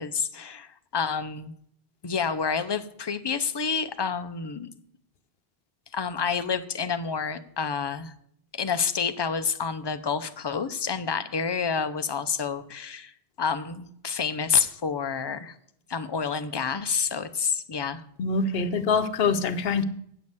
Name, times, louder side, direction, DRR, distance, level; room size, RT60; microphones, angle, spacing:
voice 1, 0.0-1.5 2.0-4.7 5.9-8.1 8.5-13.1 13.4-15.5 15.9-18.0, left 6 dB, 35° left, 0.4 m, -28 dB
voice 2, 18.2-19.8, left 4 dB, 70° left, 0.9 m, -24 dB
8.6 x 5.3 x 7.9 m
omnidirectional pair, 1.1 m